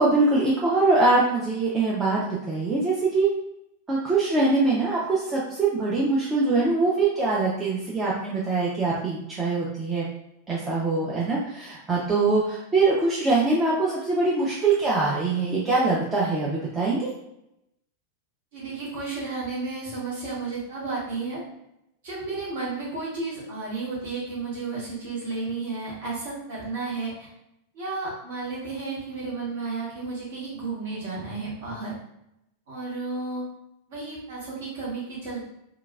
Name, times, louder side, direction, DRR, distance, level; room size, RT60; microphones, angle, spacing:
voice 1, 0.0-3.3 3.9-10.0 10.5-17.1, right 3 dB, 20° right, -6 dB, 0.5 m, -23 dB
voice 2, 18.5-21.4 22.0-27.3 27.7-32.0 32.7-33.5 33.9-35.5, right 3 dB, 55° right, -5 dB, 1.2 m, -32 dB
2.9 x 2.4 x 2.3 m, 0.81 s
figure-of-eight pair, 90°, 0 cm